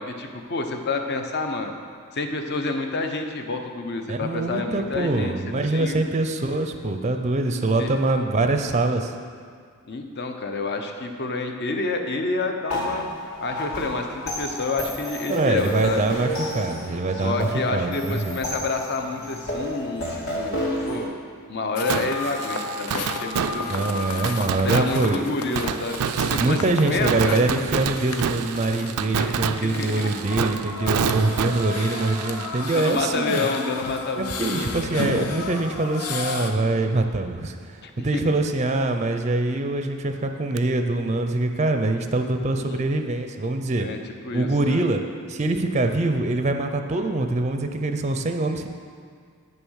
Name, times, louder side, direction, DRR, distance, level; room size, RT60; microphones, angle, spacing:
voice 1, 0.0-1.7 2.1-5.4 5.7-6.0 7.8-7.9 9.9-13.1 13.4-16.0 17.2-21.1 21.5-23.7 24.0-24.1 24.6-26.0 26.3-27.4 29.2-30.1 32.1-32.2 32.7-35.0 37.8-38.2 42.6-42.8 43.8-44.0 44.2-44.9, left 3 dB, 50° left, 5 dB, 0.8 m, -29 dB
voice 2, 4.1-9.1 15.3-18.4 23.7-25.3 26.3-33.4 34.2-43.9 44.3-45.0 45.3-48.7, right 2 dB, 30° right, 6 dB, 0.5 m, -24 dB
sound 1, 12.7-21.0, equal, 65° left, 2.8 m, -31 dB
sound 2, 21.8-36.5, left 4 dB, 90° left, 0.8 m, -33 dB
Fireworks, 21.9-33.6 33.8-33.9 40.6-40.7, right 7 dB, 80° right, 0.4 m, -29 dB
8.9 x 6.7 x 6.4 m, 2.1 s
head